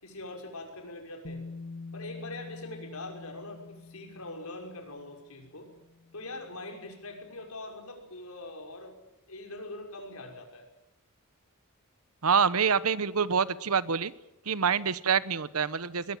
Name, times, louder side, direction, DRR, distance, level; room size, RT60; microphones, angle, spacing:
voice 1, 0.0-1.4 1.9-5.7 6.1-8.9 9.3-10.7, left 2 dB, 75° left, 3 dB, 6.1 m, -42 dB
Bass guitar, 1.2-7.3, left 3 dB, 60° left, 1.2 m, -46 dB
voice 2, 12.2-14.1 14.5-16.2, right 6 dB, 75° right, 16 dB, 1.0 m, -26 dB
21.0 x 21.0 x 9.3 m, 0.91 s
head